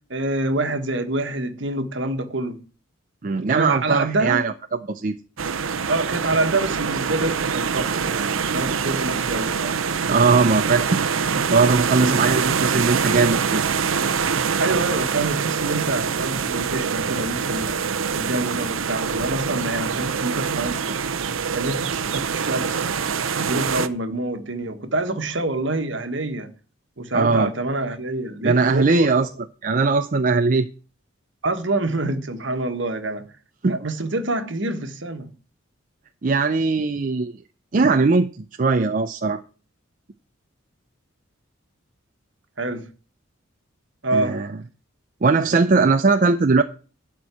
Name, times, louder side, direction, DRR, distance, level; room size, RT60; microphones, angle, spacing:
voice 1, 0.1-2.6 3.5-4.4 5.9-9.8 12.0-12.3 14.6-17.8 18.1-21.1 21.5-23.0 23.4-26.5 27.0-29.1 31.4-33.2 33.7-35.3 42.6-42.9 44.0-44.4, right 2 dB, 60° right, 1.5 m, -26 dB
voice 2, 3.2-4.5 4.9-5.2 10.1-13.6 27.1-27.5 28.4-29.3 29.6-30.7 33.6-33.8 36.2-37.3 37.7-39.4 44.1-44.5 45.2-46.6, right 4 dB, 40° right, 0.5 m, -20 dB
sound 1, 5.4-23.9, right 6 dB, 80° right, 0.7 m, -24 dB
12.0 x 4.5 x 8.3 m
head